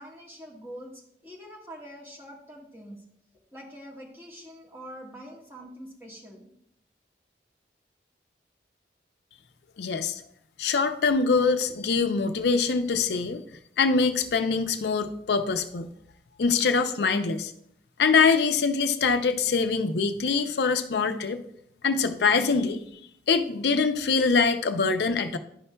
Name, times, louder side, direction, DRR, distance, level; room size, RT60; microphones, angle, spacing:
voice 1, 0.0-3.0 3.5-6.5, equal, 15° right, -4 dB, 1.4 m, -44 dB
voice 2, 9.8-10.2 10.6-13.4 13.8-15.9 16.4-17.5 18.0-21.4 21.8-22.8 23.3-25.4, left 4 dB, 75° left, 9 dB, 0.5 m, -24 dB
10.5 x 5.5 x 2.2 m, 0.70 s
head